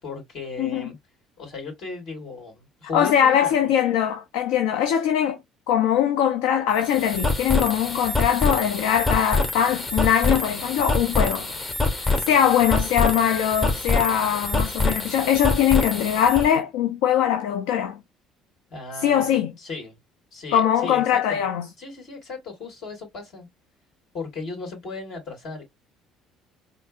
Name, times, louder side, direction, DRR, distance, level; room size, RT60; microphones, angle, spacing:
voice 1, 0.0-1.0 1.4-3.6 18.7-20.0 20.3-21.4 21.8-23.5 24.1-25.6, left 4 dB, 60° left, 2.4 m, -36 dB
voice 2, 0.6-0.9 2.9-5.4 5.7-11.5 11.8-18.0 19.0-19.5 20.5-21.7, left 9 dB, 75° left, 0.4 m, -21 dB
sound 1, 6.7-16.5, left 2 dB, 35° left, 1.5 m, -25 dB
4.2 x 2.5 x 2.4 m
hypercardioid pair, 60°, 0 cm